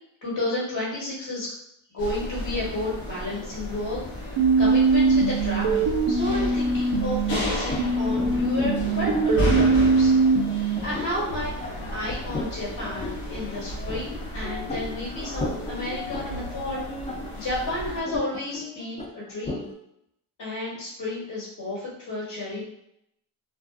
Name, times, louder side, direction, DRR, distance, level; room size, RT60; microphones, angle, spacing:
voice 1, 0.2-1.5 1.9-10.1 10.8-11.5 11.9-19.7 20.4-22.6, left 2 dB, 55° left, -7 dB, 1.3 m, -32 dB
sound 1, 2.0-18.0, left 1 dB, 80° left, 1.0 m, -33 dB
sound 2, 4.4-7.4 7.8-10.8, right 4 dB, 70° right, 0.6 m, -22 dB
sound 3, 7.3-19.7, left 2 dB, 15° left, 0.3 m, -37 dB
2.4 x 2.3 x 2.4 m, 0.77 s
cardioid pair, 50°, 50 cm